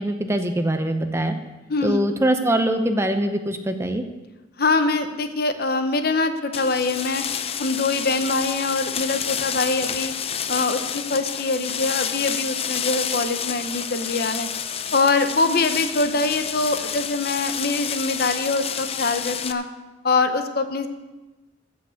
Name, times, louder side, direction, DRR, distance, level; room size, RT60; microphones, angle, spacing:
voice 1, 0.0-1.3 1.8-4.0, right 1 dB, 15° right, 7 dB, 0.7 m, -23 dB
voice 2, 1.7-2.0 4.6-7.2 7.6-10.1 10.5-14.5 14.9-19.6 20.0-20.9, left 3 dB, 55° left, 9 dB, 0.9 m, -23 dB
sound 1, 6.5-19.5, left 8 dB, 30° left, 0.5 m, -29 dB
Bowed string instrument, 13.4-17.7, left 2 dB, 70° left, 4.2 m, -48 dB
15.5 x 5.9 x 6.4 m, 1.1 s
head